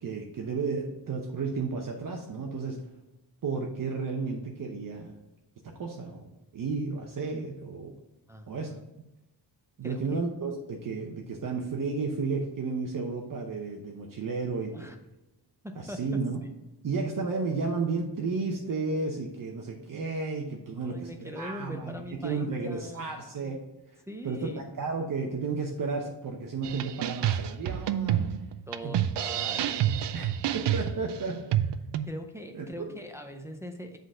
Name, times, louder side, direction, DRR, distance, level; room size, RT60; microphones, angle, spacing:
voice 1, 0.0-2.8 3.4-5.1 5.6-6.3 6.5-7.9 8.5-8.7 9.8-14.9 15.8-16.4 16.8-23.6 23.9-28.2 28.8-29.0 30.1-31.7 32.5-32.9, right 4 dB, 50° right, 1 dB, 0.8 m, -33 dB
voice 2, 8.3-8.8 9.8-10.2 14.7-15.0 15.6-16.0 20.8-23.1 24.1-24.6 28.7-29.9 32.0-34.0, equal, 5° right, 4 dB, 0.5 m, -41 dB
sound 1, 26.6-32.0, right 10 dB, 80° right, 0.5 m, -28 dB
7.7 x 3.9 x 4.9 m, 0.98 s
wide cardioid pair, 160°, 41 cm